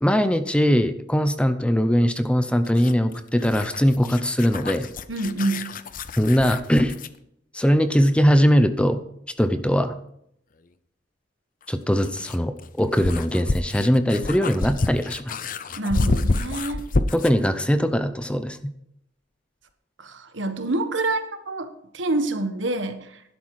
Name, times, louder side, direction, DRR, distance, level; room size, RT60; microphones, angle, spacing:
voice 1, 0.0-4.9 6.2-6.9 7.5-9.0 9.4-9.9 11.7-15.3 17.1-18.6, equal, 5° left, 10 dB, 0.7 m, -21 dB
sound 1, 2.6-7.2 9.5-9.6 11.6-17.4, left 2 dB, 45° left, 0.7 m, -29 dB
voice 2, 5.1-5.8 15.8-16.8 20.0-23.2, right 2 dB, 80° right, 9 dB, 1.4 m, -27 dB
11.5 x 11.5 x 4.8 m, 0.75 s
head